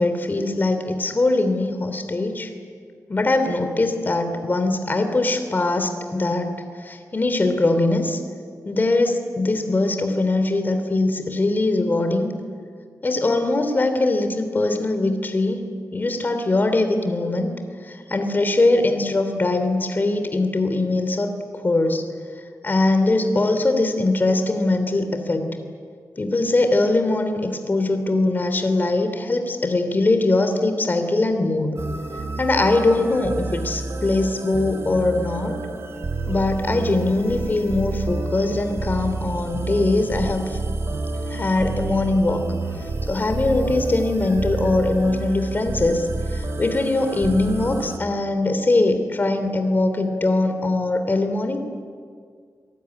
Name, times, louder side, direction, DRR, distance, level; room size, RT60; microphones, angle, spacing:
voice 1, 0.0-2.5 3.1-8.2 8.6-12.3 13.0-15.6 15.9-17.5 17.8-21.3 21.6-22.0 22.6-25.5 26.2-31.8 32.4-35.6 36.3-40.6 41.3-42.4 43.0-51.6, left 2 dB, 30° left, 7 dB, 3.1 m, -21 dB
sound 1, 31.8-48.0, right 3 dB, 45° right, 2.9 m, -29 dB
28.0 x 19.5 x 9.9 m, 2.1 s
wide cardioid pair, 115°, 6 cm